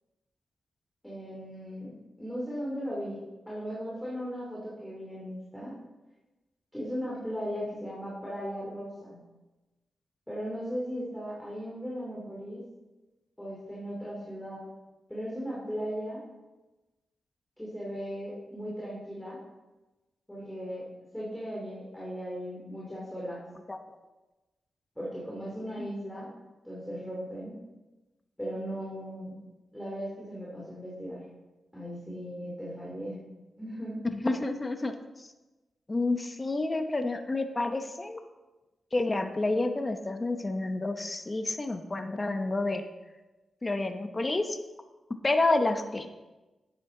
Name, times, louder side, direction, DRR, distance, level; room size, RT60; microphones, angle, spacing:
voice 1, 1.0-5.8 6.7-9.3 10.3-12.6 13.4-14.7 15.1-16.3 17.6-19.4 20.3-23.5 25.0-26.3 26.6-27.6 28.4-29.4 29.7-31.3 31.7-33.3 33.6-34.0, equal, 5° left, -7 dB, 2.6 m, -37 dB
voice 2, 34.1-34.9 35.2-35.3 35.9-38.2 38.9-42.8 43.6-44.6 45.2-46.1, left 2 dB, 25° left, 7 dB, 0.8 m, -29 dB
10.5 x 8.8 x 3.8 m, 1.1 s
wide cardioid pair, 100°, 0 cm